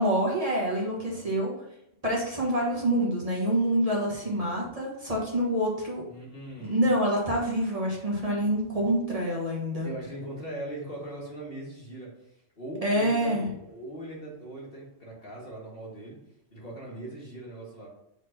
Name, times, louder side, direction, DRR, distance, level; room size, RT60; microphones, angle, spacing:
voice 1, 0.0-1.5 2.0-6.0 6.6-9.9 12.8-13.5, equal, 30° right, -4 dB, 1.4 m, -26 dB
voice 2, 1.0-1.3 4.2-4.4 6.1-6.8 9.8-16.2 16.5-17.9, right 1 dB, 50° left, -4 dB, 2.0 m, -40 dB
4.9 x 4.1 x 5.6 m, 0.81 s
omnidirectional pair, 1.2 m